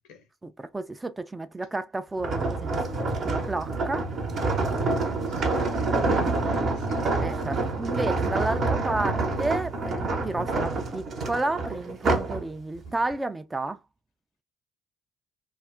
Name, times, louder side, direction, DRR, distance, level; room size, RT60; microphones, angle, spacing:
voice 1, 0.4-4.1 7.2-13.8, right 2 dB, 20° right, 0.4 m, -31 dB
sound 1, 2.2-12.4 12.8-13.1, right 3 dB, 50° right, 0.8 m, -27 dB
voice 2, 5.3-7.1 12.9-13.0, left 5 dB, 70° left, 0.7 m, -49 dB
2.4 x 2.0 x 3.6 m
hypercardioid pair, 55°, 0 cm